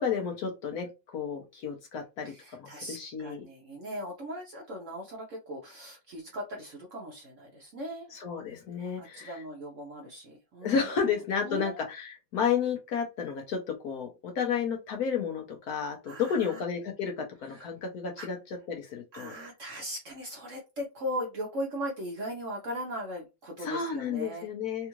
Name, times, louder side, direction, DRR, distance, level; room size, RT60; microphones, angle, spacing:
voice 1, 0.0-2.3 2.6-3.4 8.1-9.3 10.6-18.4 18.7-19.3 23.6-24.9, left 6 dB, 65° left, 3 dB, 1.1 m, -32 dB
voice 2, 2.2-8.1 9.0-11.8 16.0-16.6 17.4-17.7 18.2-18.3 19.1-24.5, equal, 60° right, 0 dB, 0.9 m, -39 dB
3.5 x 2.4 x 2.9 m, 0.26 s
omnidirectional pair, 2.0 m